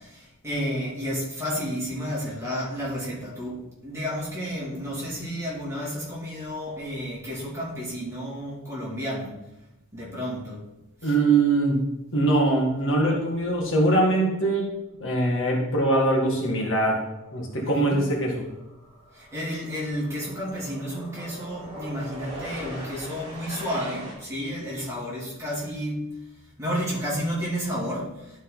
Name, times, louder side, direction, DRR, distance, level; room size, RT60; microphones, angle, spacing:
voice 1, 0.4-3.6 3.8-9.3 9.9-10.6 11.0-11.1 17.6-18.0 19.3-26.0 26.6-28.1, equal, 15° right, -7 dB, 2.6 m, -31 dB
voice 2, 11.0-11.8 12.1-14.6 15.0-18.4, right 2 dB, 60° left, -1 dB, 1.8 m, -22 dB
sound 1, 17.3-17.6 17.8-24.1, right 1 dB, 30° right, 2.5 m, -41 dB
12.0 x 4.1 x 4.0 m, 0.96 s
head